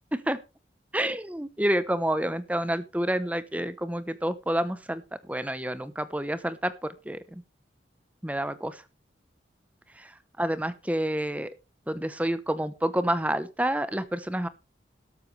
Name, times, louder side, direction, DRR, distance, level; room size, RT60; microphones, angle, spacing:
voice 1, 0.9-5.0 5.3-7.4 8.2-8.8 10.0-10.1 10.4-11.5 11.9-14.5, right 1 dB, 10° right, 13 dB, 0.8 m, -28 dB
13.5 x 12.0 x 3.2 m, 0.30 s
head